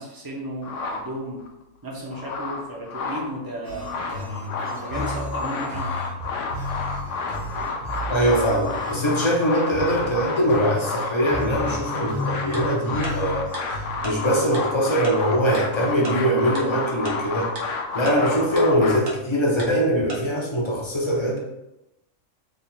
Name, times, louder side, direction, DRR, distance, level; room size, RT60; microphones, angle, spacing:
voice 1, 0.0-1.4 1.8-5.9, right 1 dB, 20° right, -3 dB, 0.7 m, -34 dB
sound 1, 0.6-1.5 1.9-3.3 3.7-19.0, left 4 dB, 75° left, 0.9 m, -30 dB
sound 2, 3.6-14.1, left 1 dB, 85° right, 1.3 m, -34 dB
voice 2, 8.1-13.8 14.0-21.4, equal, 30° left, -2 dB, 0.7 m, -22 dB
Tick-tock, 12.5-12.6 13.0-13.1 13.5-13.6 14.0-14.1 14.5-14.6 15.0-15.1 15.5-15.6 16.0-16.1 16.5-16.6 17.0-17.1 17.6-17.7 18.1-18.2 18.6-18.7 19.1-19.2 19.6-19.7 20.1-20.2, right 2 dB, 65° right, 1.2 m, -33 dB
3.7 x 2.4 x 4.3 m, 0.91 s
omnidirectional pair, 1.3 m